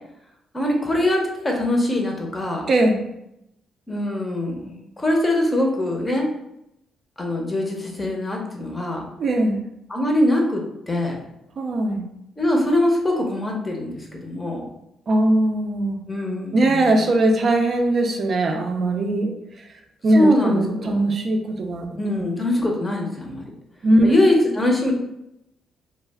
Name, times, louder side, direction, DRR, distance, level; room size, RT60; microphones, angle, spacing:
voice 1, 0.5-2.7 3.9-6.3 7.2-9.0 9.9-11.2 12.4-14.6 16.1-17.0 20.1-21.0 22.0-23.4 24.0-24.9, left 1 dB, 20° left, 0 dB, 0.6 m, -22 dB
voice 2, 9.2-9.6 11.6-12.1 15.1-16.0 16.5-19.3 20.0-22.2 23.8-24.1, right 1 dB, 50° right, 3 dB, 0.4 m, -20 dB
2.2 x 2.1 x 3.3 m, 0.82 s
cardioid pair, 90°, 0 cm